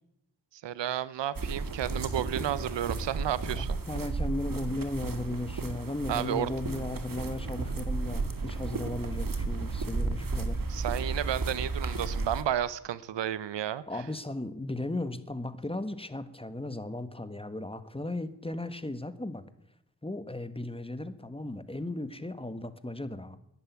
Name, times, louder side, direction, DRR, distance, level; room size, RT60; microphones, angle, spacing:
voice 1, 0.6-3.7 6.1-6.5 10.7-13.8, right 11 dB, 85° right, 0.7 m, -32 dB
sound 1, 1.3-12.4, right 3 dB, 50° right, 2.0 m, -33 dB
voice 2, 3.9-10.6 13.9-19.4 20.0-23.4, left 2 dB, 15° left, 1.4 m, -36 dB
11.5 x 10.5 x 9.5 m
cardioid pair, 55°, 42 cm